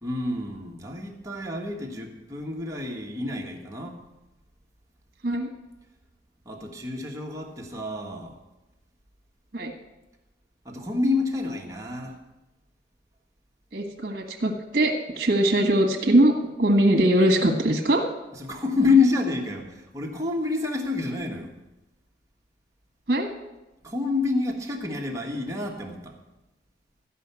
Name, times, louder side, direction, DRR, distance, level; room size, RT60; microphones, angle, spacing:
voice 1, 0.0-4.0 6.4-8.3 10.6-12.2 18.3-21.5 23.8-26.2, left 3 dB, 20° right, 0 dB, 1.5 m, -27 dB
voice 2, 13.7-16.3 16.6-18.0 23.1-23.3, right 1 dB, 50° right, 4 dB, 1.6 m, -21 dB
13.5 x 5.7 x 8.2 m, 1.0 s
head